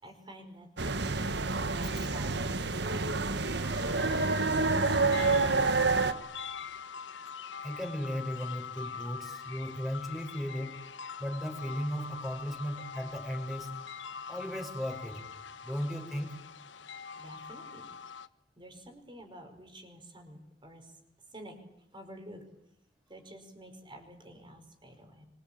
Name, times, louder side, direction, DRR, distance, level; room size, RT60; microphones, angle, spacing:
voice 1, 0.0-3.3 17.1-17.9 18.6-20.9 21.3-21.6 21.9-22.4 23.1-25.3, right 1 dB, 25° right, 5 dB, 5.2 m, -50 dB
sound 1, 0.8-6.1, right 3 dB, 65° right, 1.4 m, -28 dB
sound 2, 3.6-18.3, left 6 dB, 80° left, 1.0 m, -43 dB
voice 2, 7.6-10.8 11.2-13.8 14.3-15.2 15.6-16.4, equal, ahead, 4 dB, 5.7 m, -36 dB
25.0 x 23.0 x 8.9 m, 0.79 s
head